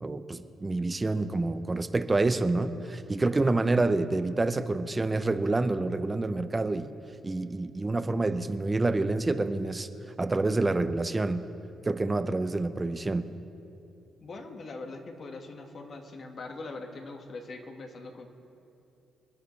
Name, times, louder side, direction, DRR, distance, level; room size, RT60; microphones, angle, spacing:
voice 1, 0.0-6.9 7.2-9.9 10.2-11.4 11.8-13.2, right 2 dB, 20° right, 11 dB, 0.6 m, -27 dB
voice 2, 14.2-18.3, left 3 dB, 50° left, 3 dB, 1.7 m, -42 dB
27.0 x 10.5 x 3.3 m, 2.7 s
cardioid pair, 90°, 0 cm